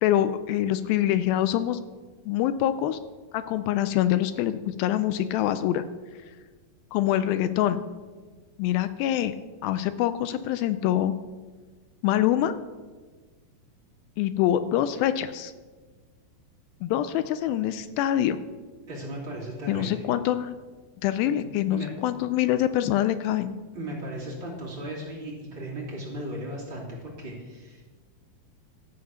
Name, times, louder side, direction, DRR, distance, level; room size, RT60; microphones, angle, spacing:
voice 1, 0.0-1.8 2.3-3.0 3.3-5.8 6.9-7.8 8.6-9.3 9.6-11.1 12.0-12.5 14.2-15.5 16.8-18.4 19.7-20.5 21.0-23.5, left 12 dB, 80° left, 12 dB, 2.3 m, -25 dB
voice 2, 18.9-20.0 21.2-21.3 21.7-21.9 23.7-27.8, right 1 dB, 35° right, -5 dB, 3.1 m, -36 dB
12.5 x 8.7 x 6.4 m, 1.4 s
omnidirectional pair, 4.3 m